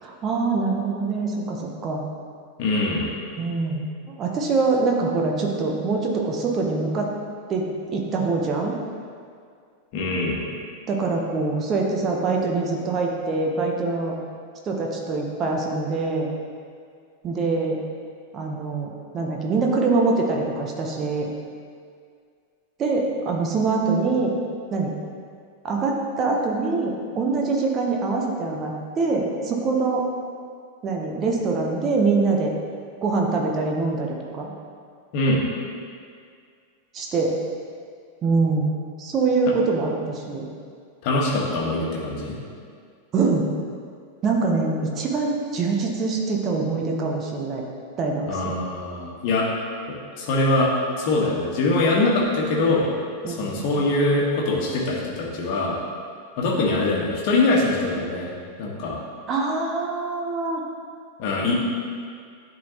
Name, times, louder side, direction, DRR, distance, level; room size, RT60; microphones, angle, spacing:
voice 1, 0.0-2.0 3.4-7.1 7.5-8.8 10.9-14.2 14.6-16.3 17.2-17.8 18.3-21.3 22.8-24.3 24.7-24.9 25.6-30.1 30.8-32.5 33.0-34.5 36.9-37.3 38.2-40.5 43.1-43.5 44.2-47.6 48.0-48.5 53.2-53.5 59.3-60.6, right 3 dB, 30° right, 0 dB, 1.0 m, -24 dB
voice 2, 2.6-3.1 9.9-10.4 35.1-35.4 41.0-42.4 48.3-49.5 49.9-50.7 51.0-52.9 53.3-55.8 56.4-58.3 58.6-59.0 61.2-61.5, left 2 dB, 45° left, -3 dB, 1.4 m, -23 dB
11.0 x 3.9 x 2.9 m, 2.2 s
figure-of-eight pair, 90°, 0 cm